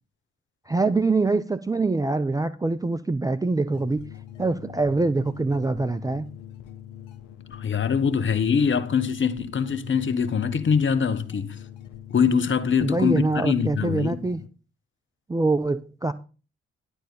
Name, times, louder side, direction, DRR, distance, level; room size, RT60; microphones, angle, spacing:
voice 1, 0.7-4.0 4.4-6.3 12.8-14.4 15.3-16.1, right 3 dB, 10° right, 0.5 m, -24 dB
sound 1, 3.7-14.5, left 11 dB, 70° left, 0.9 m, -43 dB
voice 2, 7.5-11.6 12.1-14.2, left 6 dB, 35° left, 1.0 m, -23 dB
10.5 x 4.5 x 6.9 m
figure-of-eight pair, 40°, 32 cm